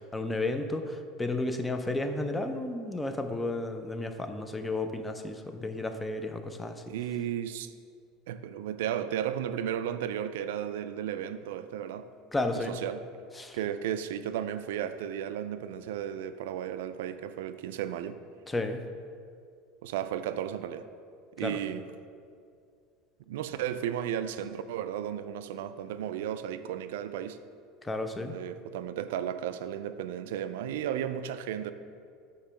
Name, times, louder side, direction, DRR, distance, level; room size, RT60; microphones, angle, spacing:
voice 1, 0.1-6.8 12.3-12.8 13.4-13.6 18.5-18.8 21.4-21.6 27.8-28.3, left 2 dB, 10° left, 0.4 m, -32 dB
voice 2, 6.9-7.7 8.3-12.1 12.5-13.0 13.5-18.2 19.8-20.9 21.4-21.9 23.3-27.4 28.2-31.7, right 10 dB, 90° right, 0.3 m, -34 dB
8.3 x 2.9 x 5.6 m
cardioid pair, 165°, 0 cm